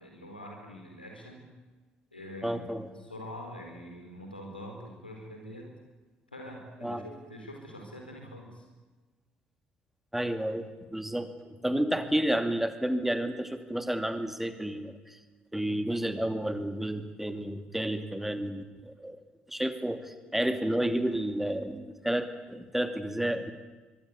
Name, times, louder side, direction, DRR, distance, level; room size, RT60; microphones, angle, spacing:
voice 1, 0.0-1.5 2.1-2.6 3.0-5.7 6.3-8.6, equal, 85° left, 2 dB, 4.6 m, -44 dB
voice 2, 2.4-2.9 6.8-7.0 10.1-11.3 11.6-15.2 15.5-19.2 19.5-23.5, right 1 dB, 5° right, 8 dB, 2.8 m, -31 dB
25.0 x 23.0 x 8.8 m, 1.3 s
figure-of-eight pair, 50°, 5 cm